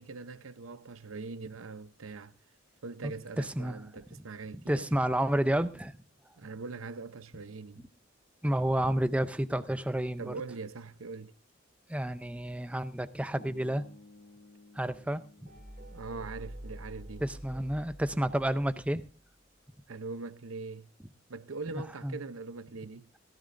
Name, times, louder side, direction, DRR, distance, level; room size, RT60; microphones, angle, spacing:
voice 1, 0.0-2.3 2.8-4.9 6.4-7.9 10.2-11.3 15.9-17.2 19.9-20.9 21.3-23.1, right 3 dB, 90° right, 0.7 m, -42 dB
voice 2, 3.0-3.8 4.7-6.0 8.4-10.3 11.9-13.8 14.7-15.2 17.2-19.1 22.0-22.2, right 1 dB, 5° right, 0.5 m, -30 dB
sound 1, 13.4-17.5, left 2 dB, 60° left, 1.1 m, -57 dB
sound 2, 15.5-19.2, right 1 dB, 40° right, 2.4 m, -47 dB
16.5 x 14.5 x 2.5 m
head